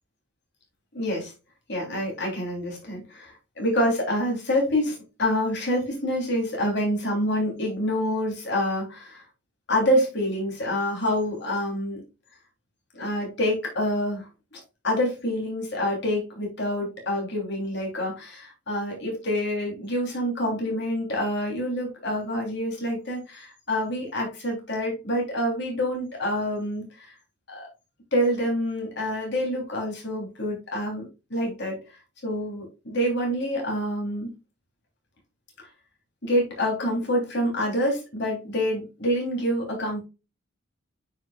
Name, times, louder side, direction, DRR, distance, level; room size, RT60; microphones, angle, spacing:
voice 1, 0.9-1.3 1.7-9.2 9.7-12.0 12.9-27.1 27.5-27.7 28.1-31.8 32.2-34.3 35.6-35.7 36.2-40.0, equal, 55° left, -1 dB, 3.2 m, -27 dB
9.0 x 5.2 x 2.3 m, 0.29 s
head